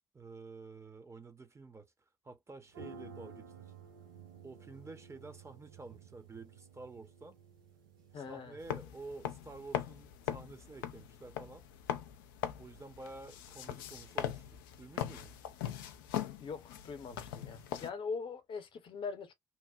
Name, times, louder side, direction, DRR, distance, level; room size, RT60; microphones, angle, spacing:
voice 1, 0.1-1.9 2.2-3.7 4.4-7.4 8.1-11.6 12.6-15.3, right 3 dB, 25° right, 0.8 m, -50 dB
sound 1, 2.7-8.6, right 5 dB, 80° right, 0.7 m, -53 dB
voice 2, 8.1-8.6 16.4-19.3, left 5 dB, 50° left, 0.8 m, -42 dB
sound 2, 8.6-17.9, left 11 dB, 75° left, 0.4 m, -41 dB
2.9 x 2.0 x 2.4 m
figure-of-eight pair, 45°, 11 cm